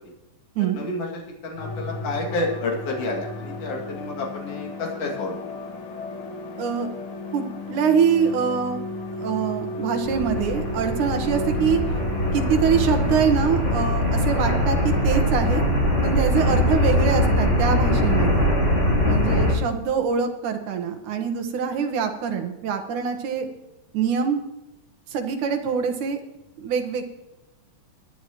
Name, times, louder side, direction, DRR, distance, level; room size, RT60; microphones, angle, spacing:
voice 1, 0.7-5.4 16.8-16.9 19.3-19.5, left 2 dB, 55° left, -1 dB, 3.3 m, -30 dB
sound 1, 1.6-15.2, left 2 dB, 75° left, 2.9 m, -33 dB
voice 2, 6.6-6.9 7.3-8.8 9.1-11.8 12.3-15.6 16.0-18.5 19.0-23.5 23.9-24.4 25.1-26.2 26.6-27.0, right 7 dB, 85° right, 5 dB, 2.8 m, -24 dB
sound 2, 10.0-19.5, equal, 20° left, 3.8 m, -22 dB
23.5 x 10.0 x 3.0 m, 0.99 s
omnidirectional pair, 3.4 m